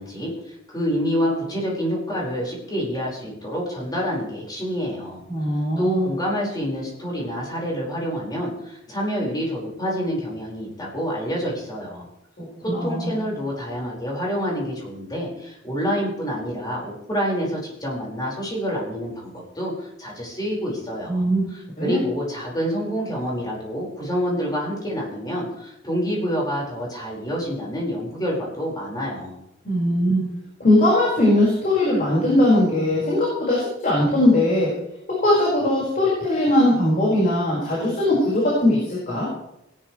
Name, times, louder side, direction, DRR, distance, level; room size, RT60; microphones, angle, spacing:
voice 1, 0.0-5.2 5.8-12.0 12.6-29.4, equal, 20° left, -3 dB, 5.1 m, -27 dB
voice 2, 5.3-6.1 12.4-13.1 21.1-21.5 21.8-22.0 29.6-30.2 30.6-34.7 35.2-39.3, left 1 dB, 40° left, -5 dB, 5.1 m, -20 dB
19.0 x 11.5 x 3.3 m, 0.84 s
head